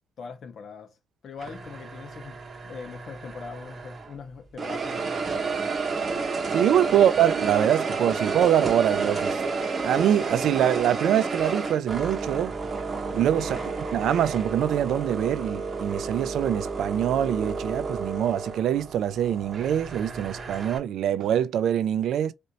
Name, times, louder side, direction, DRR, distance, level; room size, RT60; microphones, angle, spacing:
voice 1, 0.2-0.9 1.2-5.9 6.9-7.2 13.4-13.7, left 5 dB, 55° left, 1.0 m, -42 dB
sound 1, 1.4-4.2 4.6-20.8, right 4 dB, 35° right, 0.9 m, -31 dB
voice 2, 6.5-9.4 9.8-12.5 13.1-22.3, right 10 dB, 75° right, 0.4 m, -24 dB
4.2 x 2.6 x 2.8 m
cardioid pair, 115°, 0 cm